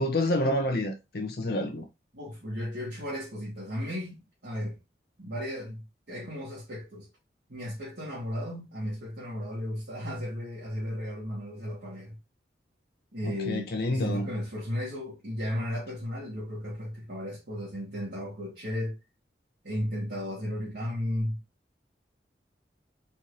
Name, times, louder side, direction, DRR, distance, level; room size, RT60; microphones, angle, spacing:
voice 1, 0.0-1.8 13.2-14.3, left 1 dB, 60° left, 0.6 m, -28 dB
voice 2, 2.1-4.8 5.2-7.1 7.5-12.2 13.1-19.0 19.6-21.4, equal, 65° right, 1.5 m, -35 dB
4.1 x 2.6 x 3.0 m
head